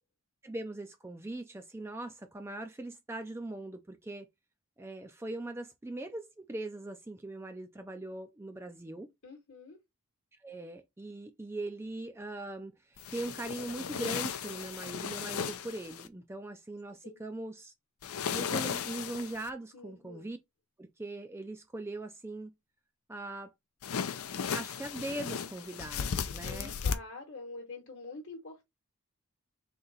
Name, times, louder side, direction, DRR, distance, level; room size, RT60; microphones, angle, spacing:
voice 1, 0.4-4.3 4.8-9.1 10.4-17.7 18.3-20.4 20.8-22.5 23.1-23.5 24.5-26.7, right 2 dB, 10° right, 0.4 m, -41 dB
voice 2, 9.2-9.8 17.0-17.2 19.7-20.3 26.4-28.7, left 3 dB, 55° left, 1.1 m, -46 dB
sound 1, 13.0-16.1 18.0-19.5 23.8-26.9, left 7 dB, 75° left, 0.5 m, -36 dB
3.8 x 2.9 x 4.0 m
head